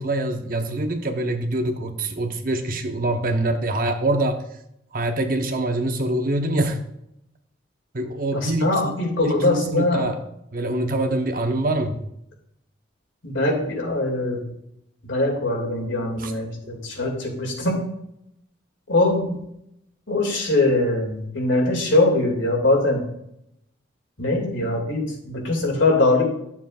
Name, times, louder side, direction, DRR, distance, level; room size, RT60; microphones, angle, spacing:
voice 1, 0.0-4.4 4.9-6.8 7.9-9.0 9.2-10.2 10.5-12.0 16.2-16.3, right 1 dB, 50° right, 5 dB, 0.9 m, -24 dB
voice 2, 8.3-10.1 13.2-14.4 15.0-17.8 18.9-19.4 20.1-23.0 24.2-26.2, left 2 dB, 90° left, 0 dB, 2.5 m, -22 dB
11.5 x 7.2 x 2.5 m, 0.77 s
head